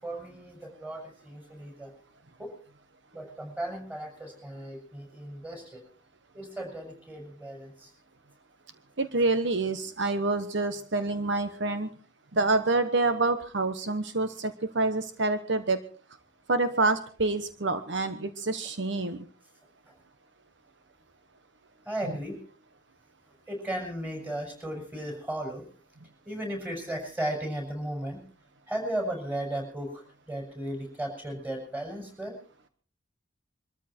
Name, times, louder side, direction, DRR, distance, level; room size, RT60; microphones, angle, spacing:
voice 1, 0.0-1.9 2.4-2.5 3.1-5.8 6.3-7.9 19.9-20.0 21.8-22.4 23.5-25.6 26.2-28.2 28.7-32.3, right 1 dB, 10° right, 3 dB, 6.7 m, -35 dB
voice 2, 9.0-11.9 12.3-15.8 16.5-19.2, right 3 dB, 65° right, 10 dB, 1.2 m, -27 dB
23.5 x 14.0 x 4.5 m, 0.40 s
head